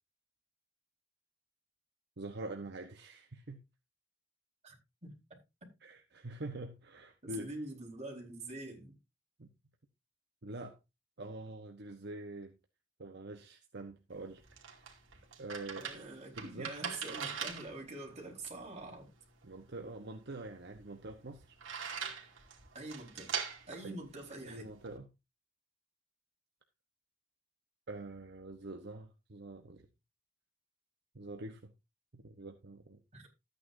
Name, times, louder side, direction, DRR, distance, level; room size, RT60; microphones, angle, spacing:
voice 1, 2.2-3.6 5.8-7.5 9.4-9.5 10.4-10.8 11.2-12.5 13.0-14.9 15.4-15.9 16.4-16.7 19.4-21.6 23.8-24.0 24.5-25.1 27.9-29.9 31.1-31.7 32.1-33.0, right 2 dB, 60° right, 1.1 m, -45 dB
voice 2, 7.2-8.9 15.8-19.1 22.7-23.3 23.7-24.7 33.1-33.3, right 2 dB, 35° right, 4.6 m, -45 dB
sound 1, 14.1-25.0, right 7 dB, 90° right, 2.5 m, -43 dB
13.5 x 9.3 x 2.7 m
head